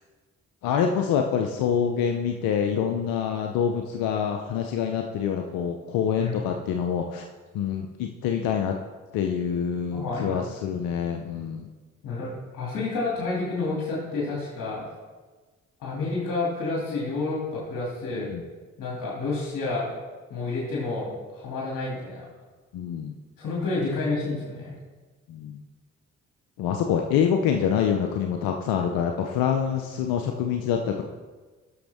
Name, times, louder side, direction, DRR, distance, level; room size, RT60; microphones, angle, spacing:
voice 1, 0.6-7.3 7.5-8.7 9.1-11.7 18.1-18.4 22.7-23.1 25.3-25.6 26.6-31.0, left 8 dB, 85° left, 4 dB, 0.6 m, -26 dB
voice 2, 9.9-10.4 12.0-14.8 15.8-18.3 18.8-19.9 20.3-22.2 23.4-24.7, left 3 dB, 70° left, -5 dB, 2.5 m, -29 dB
12.5 x 6.2 x 3.5 m, 1.3 s
hypercardioid pair, 45°, 34 cm